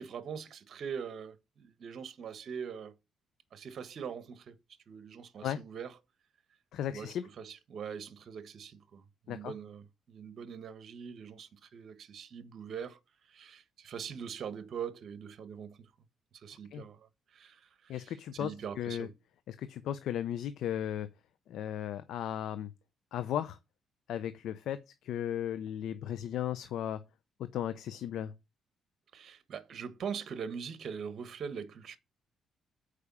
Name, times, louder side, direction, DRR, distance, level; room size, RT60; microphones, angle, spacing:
voice 1, 0.0-2.9 3.5-4.6 4.9-6.0 6.9-13.0 13.3-15.9 16.3-19.1 29.1-32.0, right 7 dB, 60° right, 1.4 m, -42 dB
voice 2, 6.7-7.2 9.3-9.5 16.7-16.8 17.9-19.1 19.5-21.1 21.5-22.7 23.1-23.6 24.1-27.0 27.5-28.3, left 10 dB, 80° left, 0.6 m, -35 dB
6.6 x 4.9 x 6.9 m
cardioid pair, 90°, 0 cm